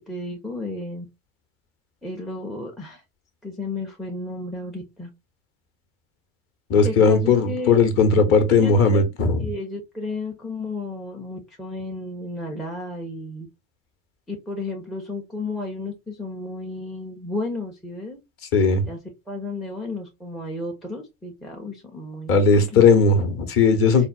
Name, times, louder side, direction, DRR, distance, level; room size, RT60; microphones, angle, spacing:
voice 1, 0.1-1.1 2.0-3.0 3.4-5.1 6.8-7.8 8.5-9.0 9.4-13.5 14.3-18.2 18.9-19.0 19.3-22.9, left 2 dB, ahead, 0.4 m, -33 dB
voice 2, 6.7-9.4 18.5-18.9 22.3-24.1, left 4 dB, 35° left, 0.7 m, -17 dB
4.0 x 2.0 x 2.2 m
figure-of-eight pair, 75°, 40 cm